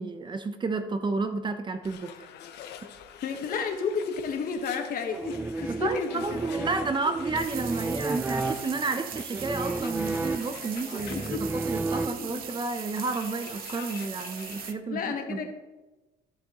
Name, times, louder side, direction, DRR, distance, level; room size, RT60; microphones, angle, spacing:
voice 1, 0.0-2.1 5.7-11.2 11.5-15.4, right 3 dB, 25° right, 8 dB, 0.8 m, -31 dB
sound 1, 1.8-14.8, left 9 dB, 80° left, 0.9 m, -47 dB
voice 2, 3.2-6.7 11.1-11.4 12.0-12.4 14.9-15.5, left 5 dB, 55° left, 5 dB, 1.4 m, -32 dB
sound 2, 5.1-12.6, right 2 dB, 10° right, 0.4 m, -33 dB
sound 3, 7.4-14.7, right 11 dB, 60° right, 0.6 m, -40 dB
13.5 x 7.4 x 3.1 m, 1.1 s
cardioid pair, 110°, 17 cm